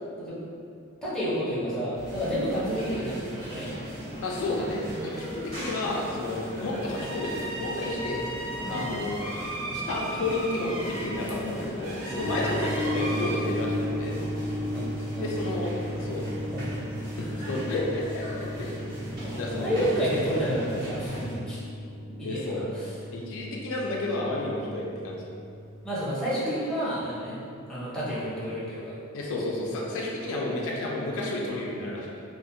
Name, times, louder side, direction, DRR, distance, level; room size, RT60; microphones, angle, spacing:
voice 1, 1.0-3.7 8.7-8.8 14.7-14.9 15.1-15.3 16.5-16.7 19.2-21.6 22.2-22.9 25.8-27.4 27.7-29.0 29.7-29.9, equal, 5° left, -10 dB, 0.6 m, -30 dB
sound 1, 1.9-21.3, equal, 45° right, 0.9 m, -38 dB
voice 2, 4.2-8.2 8.7-9.2 9.7-14.2 15.2-16.3 17.2-18.8 19.4-20.1 22.2-22.6 23.1-25.2 29.1-32.2, left 2 dB, 65° left, -2 dB, 0.3 m, -31 dB
sound 2, 6.4-13.4, right 1 dB, 65° right, 0.4 m, -36 dB
sound 3, 12.2-25.9, left 1 dB, 80° right, 1.0 m, -35 dB
2.4 x 2.0 x 2.6 m, 2.5 s
head